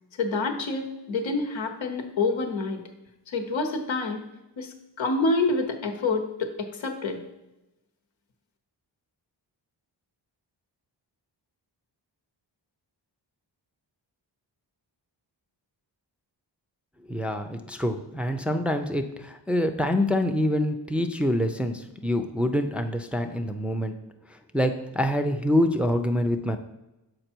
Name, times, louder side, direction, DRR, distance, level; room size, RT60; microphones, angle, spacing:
voice 1, 0.2-2.8 3.3-4.2 4.6-7.2, left 3 dB, 85° left, 5 dB, 1.0 m, -27 dB
voice 2, 17.1-23.9 24.5-26.6, left 1 dB, 5° right, 5 dB, 0.4 m, -26 dB
6.6 x 4.6 x 4.5 m, 0.96 s
wide cardioid pair, 80°, 44 cm